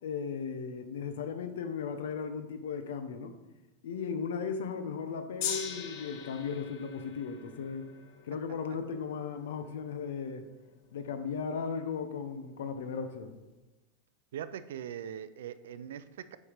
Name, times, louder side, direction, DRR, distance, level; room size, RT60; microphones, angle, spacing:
voice 1, 0.0-3.3 3.8-7.9 8.2-10.4 10.9-13.3, left 6 dB, 85° left, 8 dB, 0.7 m, -36 dB
Gong, 5.4-11.8 12.5-12.6, left 7 dB, 45° left, 0.7 m, -42 dB
voice 2, 14.3-16.4, right 9 dB, 80° right, 14 dB, 0.4 m, -41 dB
7.0 x 3.3 x 5.0 m, 1.1 s
supercardioid pair, 175°, 0 cm